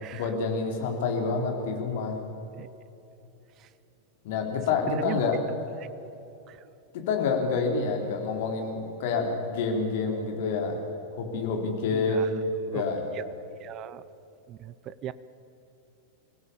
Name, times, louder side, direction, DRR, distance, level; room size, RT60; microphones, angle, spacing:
voice 1, 0.1-2.2 4.2-5.4 6.9-10.7 11.2-13.0, left 4 dB, 50° left, 3 dB, 3.8 m, -28 dB
voice 2, 4.9-5.2 5.8-5.9 6.5-6.6 11.9-12.3 12.7-12.8 13.6-14.0 14.5-15.1, right 12 dB, 35° right, 17 dB, 0.7 m, -38 dB
25.5 x 17.0 x 7.2 m, 2.9 s
figure-of-eight pair, 90°, 0 cm